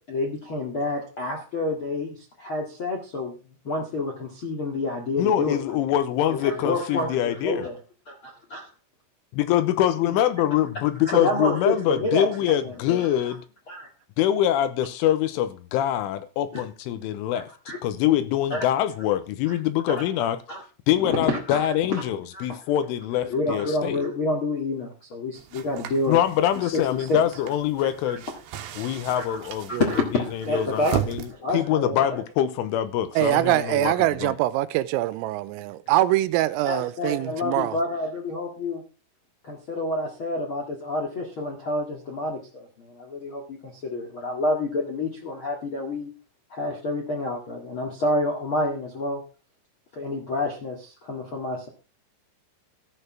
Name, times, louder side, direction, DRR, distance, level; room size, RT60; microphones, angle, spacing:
voice 1, 0.1-3.3 3.6-5.6 6.3-7.7 8.0-8.7 11.1-12.3 12.6-13.1 13.7-13.9 16.5-16.6 17.3-17.8 18.5-18.7 19.5-19.6 19.9-20.0 20.5-20.6 21.0-22.0 22.3-22.5 23.3-26.2 26.5-27.2 28.0-28.2 29.1-29.4 29.7-32.2 36.6-38.8 39.4-46.1 46.5-49.2 49.9-51.7, left 2 dB, 60° left, 1.3 m, -28 dB
voice 2, 5.2-7.7 9.3-13.4 14.2-17.5 17.8-20.4 20.9-24.0 26.1-28.2 28.8-29.7 30.3-33.9 34.2-34.3, left 11 dB, 80° left, 3.2 m, -24 dB
sound 1, 25.3-31.3, right 10 dB, 70° right, 3.0 m, -36 dB
voice 3, 33.2-37.8, right 15 dB, 85° right, 3.4 m, -23 dB
13.5 x 6.6 x 6.0 m
omnidirectional pair, 5.9 m